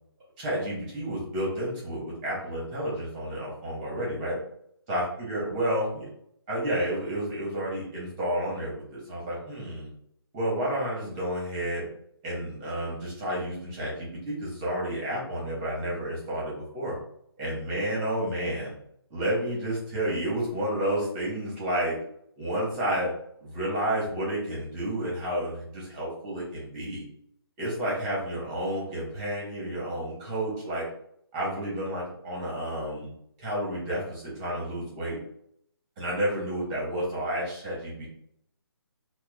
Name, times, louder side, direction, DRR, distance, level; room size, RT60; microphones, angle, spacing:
voice 1, 0.4-4.4 4.9-6.0 6.5-9.9 10.3-11.8 12.2-17.0 17.4-18.7 19.1-22.0 22.4-23.1 23.4-27.0 27.6-30.8 31.3-33.1 33.4-35.2 36.0-38.1, right 1 dB, 15° right, -5 dB, 1.0 m, -30 dB
4.5 x 2.2 x 2.3 m, 0.71 s
hypercardioid pair, 165°, 13 cm